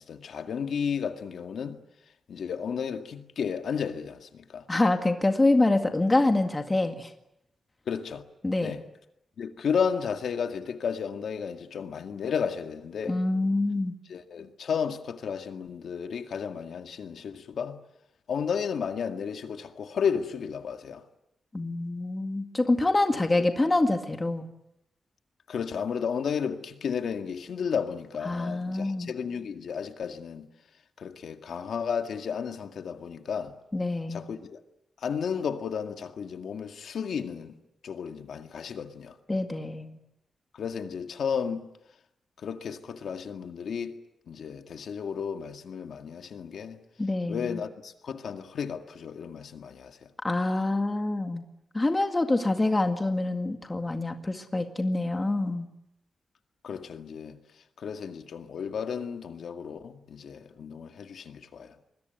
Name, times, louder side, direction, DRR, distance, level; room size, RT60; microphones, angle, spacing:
voice 1, 0.0-1.8 2.3-4.7 7.9-8.2 8.6-8.8 9.4-13.2 14.1-17.8 18.3-21.1 23.4-23.5 25.5-30.5 31.0-33.6 34.1-34.6 35.0-37.6 37.8-39.2 40.5-41.7 42.4-44.0 44.3-46.8 47.3-50.1 56.6-57.4 57.8-61.8, left 6 dB, 75° left, 2.0 m, -33 dB
voice 2, 4.7-7.1 8.4-8.8 13.1-13.9 21.5-24.5 28.3-29.1 33.7-34.2 39.3-40.0 47.0-47.6 50.2-51.4 51.7-55.7, left 2 dB, 20° left, 1.9 m, -26 dB
26.0 x 21.5 x 9.3 m
wide cardioid pair, 160°, 0 cm